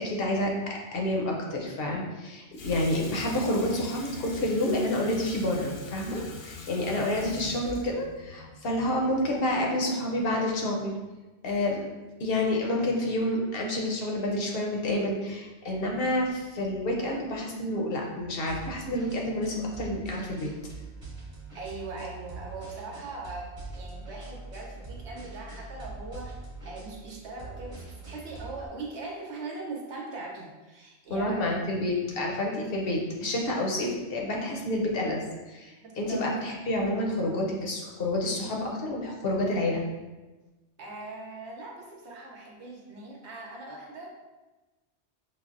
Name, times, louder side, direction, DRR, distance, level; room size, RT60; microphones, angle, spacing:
voice 1, 0.0-11.0 11.4-11.8 12.2-20.5 31.1-39.8, left 1 dB, 60° left, -1 dB, 0.8 m, -29 dB
Water tap faucet / Sink (filling or washing), 2.5-9.6, left 3 dB, 85° left, 0.9 m, -43 dB
sound 1, 18.5-28.7, right 3 dB, 35° right, 1.1 m, -43 dB
voice 2, 21.5-31.5 32.1-32.2 35.8-36.3 40.8-44.1, right 3 dB, 75° right, -1 dB, 1.0 m, -40 dB
5.7 x 2.0 x 2.4 m, 1.1 s
omnidirectional pair, 1.2 m